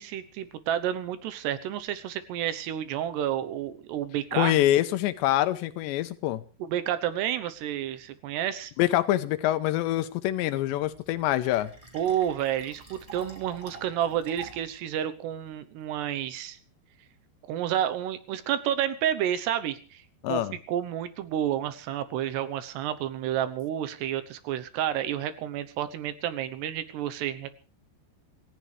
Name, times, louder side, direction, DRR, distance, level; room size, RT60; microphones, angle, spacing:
voice 1, 0.0-4.6 6.6-8.7 11.9-16.6 17.5-20.0 20.3-20.4 20.7-27.5, right 10 dB, 75° right, 12 dB, 3.0 m, -30 dB
voice 2, 4.3-6.4 8.8-11.7 20.2-20.5, left 14 dB, 80° left, 12 dB, 3.2 m, -25 dB
Fill (with liquid), 10.8-14.8, right 4 dB, 10° right, 3.5 m, -48 dB
27.0 x 15.0 x 3.4 m, 0.36 s
omnidirectional pair, 5.0 m